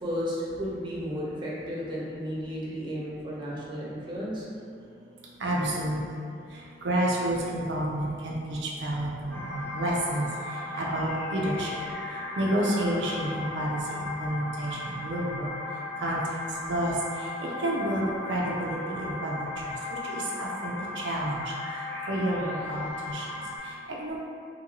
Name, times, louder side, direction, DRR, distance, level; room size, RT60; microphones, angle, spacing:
voice 1, 0.0-4.5, equal, 30° right, -7 dB, 0.7 m, -33 dB
voice 2, 5.4-6.0 6.5-11.7 12.4-15.5 16.0-16.4 16.7-21.5 22.1-24.2, right 1 dB, 85° right, -4 dB, 0.4 m, -30 dB
sound 1, 9.3-23.6, left 2 dB, 15° left, 0.5 m, -36 dB
2.7 x 2.6 x 2.9 m, 2.4 s
head